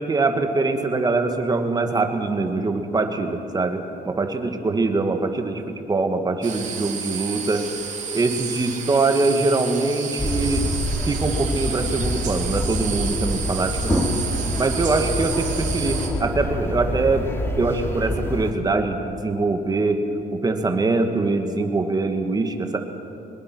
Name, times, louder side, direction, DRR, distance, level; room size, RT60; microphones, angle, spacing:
voice 1, 0.0-7.6 8.1-10.7 11.1-14.1 14.6-17.3 17.6-20.0 20.3-22.8, right 3 dB, 25° right, 5 dB, 1.9 m, -23 dB
sound 1, 6.4-16.1, right 7 dB, 45° right, 3.3 m, -31 dB
sound 2, 10.2-18.5, left 1 dB, 15° left, 2.5 m, -26 dB
23.5 x 21.0 x 6.2 m, 2.9 s
cardioid pair, 110°, 17 cm